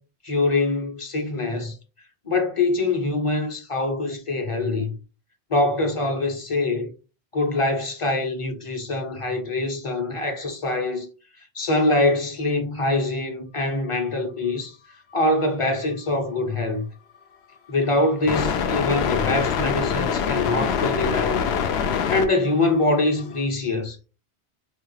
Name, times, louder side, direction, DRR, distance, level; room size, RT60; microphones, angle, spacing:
voice 1, 0.2-1.8 2.3-4.9 5.5-6.9 7.3-11.1 11.5-14.7 15.1-16.9 17.7-21.4 22.1-24.0, left 2 dB, 35° left, 0.7 m, -24 dB
sound 1, 18.3-23.4, left 7 dB, 75° left, 0.8 m, -25 dB
4.8 x 2.3 x 3.2 m
omnidirectional pair, 1.1 m